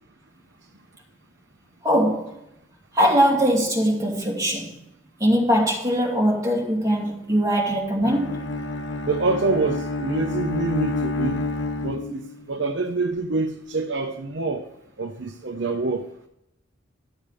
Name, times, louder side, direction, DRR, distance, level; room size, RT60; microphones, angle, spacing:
voice 1, 1.8-2.4 2.9-4.8 5.2-8.4, equal, 15° right, 2.7 m, -21 dB
Bowed string instrument, 8.0-12.4, left 3 dB, 60° left, 0.9 m, -29 dB
voice 2, 9.1-11.4 11.8-14.6 15.0-16.0, right 3 dB, 60° right, 0.8 m, -26 dB
12.0 x 7.2 x 5.0 m
head